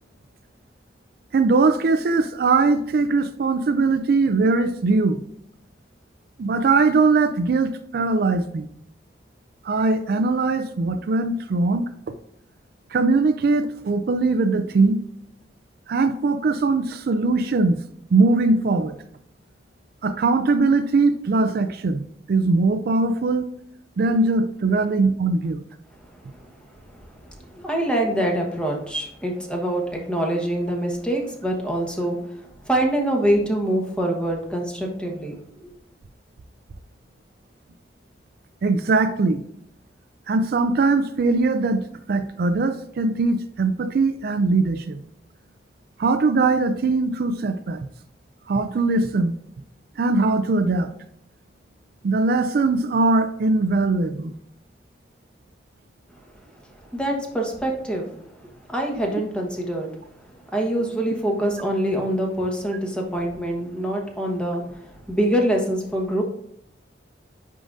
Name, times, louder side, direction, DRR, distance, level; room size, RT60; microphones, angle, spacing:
voice 1, 1.3-5.2 6.4-8.7 9.6-11.9 12.9-15.0 15.9-17.8 18.1-19.0 20.0-23.5 24.0-25.6 38.6-39.4 40.3-45.0 46.0-47.8 48.5-49.4 50.0-50.9 52.0-54.3, right 3 dB, 60° right, 8 dB, 0.4 m, -21 dB
voice 2, 27.5-35.7 56.9-58.1 58.7-60.0 60.5-66.2, right 1 dB, 5° left, 1 dB, 1.1 m, -25 dB
10.0 x 3.7 x 2.5 m, 0.73 s
head